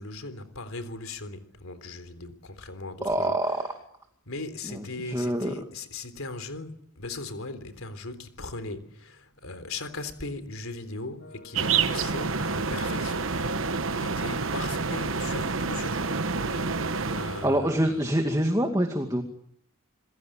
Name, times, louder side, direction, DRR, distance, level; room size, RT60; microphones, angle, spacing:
voice 1, 0.0-3.5 4.3-13.5 13.9-16.8 17.1-18.1, left 3 dB, 80° left, 3.7 m, -39 dB
voice 2, 3.0-3.6 5.0-5.5 17.4-19.2, right 1 dB, 15° right, 2.3 m, -25 dB
sound 1, 11.2-18.4, left 2 dB, 65° left, 3.6 m, -45 dB
sound 2, 11.5-17.5, right 4 dB, 70° right, 1.1 m, -28 dB
28.0 x 21.0 x 9.0 m
head